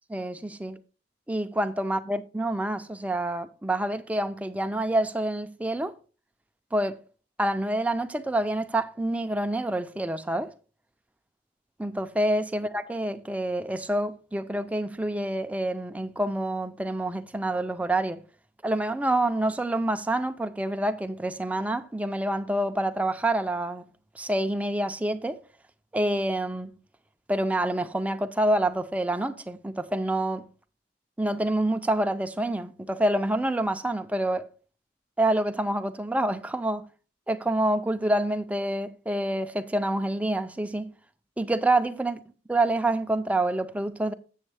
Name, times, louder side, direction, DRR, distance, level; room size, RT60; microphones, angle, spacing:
voice 1, 0.1-0.8 1.3-5.9 6.7-7.0 7.4-10.5 11.8-18.2 18.6-23.8 24.2-25.4 25.9-26.7 27.3-30.5 31.2-34.5 35.2-36.9 37.3-40.9 41.4-42.2 42.5-44.1, right 1 dB, 10° right, 0.4 m, -27 dB
7.5 x 7.2 x 3.2 m
head